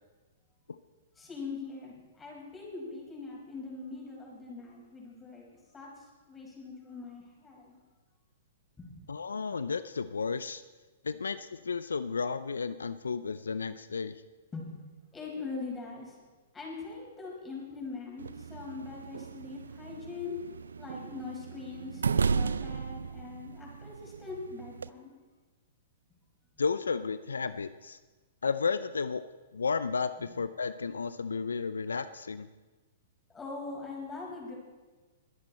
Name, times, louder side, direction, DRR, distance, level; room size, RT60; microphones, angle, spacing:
voice 1, 1.2-5.4 5.7-7.7 8.8-8.9 14.5-14.7 15.1-16.2 16.5-20.4 20.8-25.1 33.3-34.5, left 4 dB, 15° left, -3 dB, 5.6 m, -42 dB
voice 2, 9.1-10.6 11.0-14.2 26.6-28.0 28.4-29.2 29.5-32.5, left 5 dB, 85° left, 14 dB, 0.5 m, -33 dB
sound 1, 18.2-24.9, right 5 dB, 85° right, 0.4 m, -35 dB
22.0 x 10.5 x 4.3 m, 1.3 s
hypercardioid pair, 120°, 0 cm